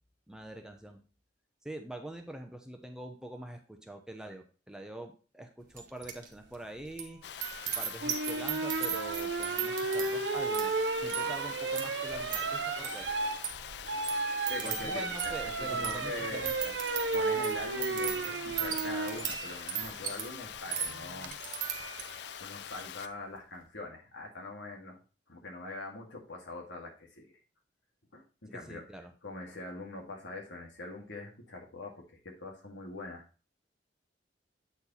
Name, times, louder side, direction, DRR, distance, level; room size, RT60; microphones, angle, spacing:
voice 1, 0.3-1.0 1.6-7.2 7.8-13.1 14.6-16.7 28.5-29.1, right 1 dB, 5° right, 4 dB, 0.8 m, -45 dB
sound 1, 5.8-6.3 6.5-22.3 22.7-23.1, right 8 dB, 45° right, 1.3 m, -39 dB
Water, 7.2-23.1, left 9 dB, 65° left, 0.4 m, -44 dB
sound 2, 8.0-19.2 20.9-21.3, right 3 dB, 75° right, 0.6 m, -33 dB
voice 2, 14.5-16.4 17.1-21.3 22.4-25.0 25.3-27.4 28.1-28.8 29.2-33.2, left 2 dB, 85° left, 0 dB, 2.2 m, -43 dB
8.3 x 4.4 x 4.2 m, 0.35 s
head